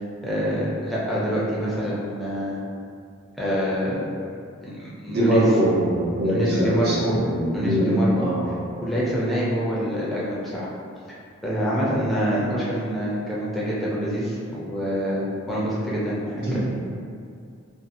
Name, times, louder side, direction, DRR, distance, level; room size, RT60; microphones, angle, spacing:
voice 1, 0.2-2.6 3.4-4.1 4.6-5.5 6.2-7.2 7.5-8.3 8.8-10.7 11.4-16.6, equal, ahead, -8 dB, 0.4 m, -26 dB
voice 2, 5.1-8.5 16.5-16.6, equal, 50° right, -7 dB, 0.6 m, -22 dB
2.7 x 2.2 x 2.5 m, 2.3 s
head